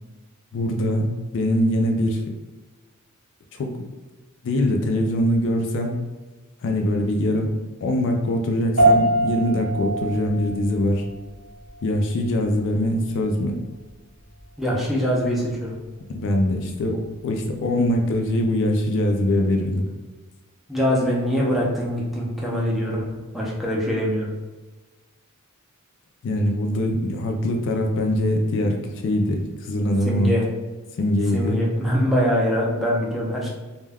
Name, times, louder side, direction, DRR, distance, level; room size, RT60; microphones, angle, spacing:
voice 1, 0.5-2.2 3.5-3.8 4.4-6.0 6.6-7.5 7.8-11.0 11.8-13.6 16.1-19.8 26.2-30.3 31.0-31.6, left 1 dB, 55° left, 3 dB, 0.3 m, -23 dB
sound 1, 8.8-18.4, right 2 dB, 65° right, 0.8 m, -27 dB
voice 2, 14.6-15.7 20.7-24.3 30.1-30.5 31.3-33.5, equal, ahead, -5 dB, 0.5 m, -23 dB
2.2 x 2.1 x 3.3 m, 1.2 s
head